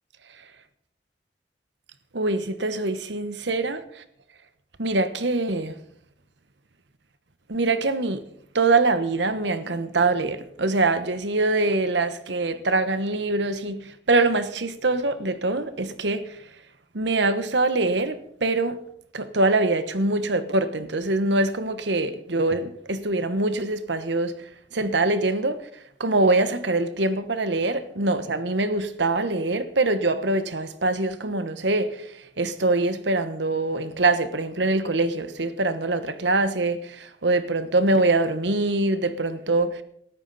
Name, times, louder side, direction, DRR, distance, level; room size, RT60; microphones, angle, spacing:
voice 1, 2.1-4.0 4.8-5.8 7.5-8.2 8.5-16.4 16.9-18.8 19.1-25.7 26.0-39.8, right 2 dB, 75° right, 1.2 m, -24 dB
18.0 x 13.5 x 4.2 m
head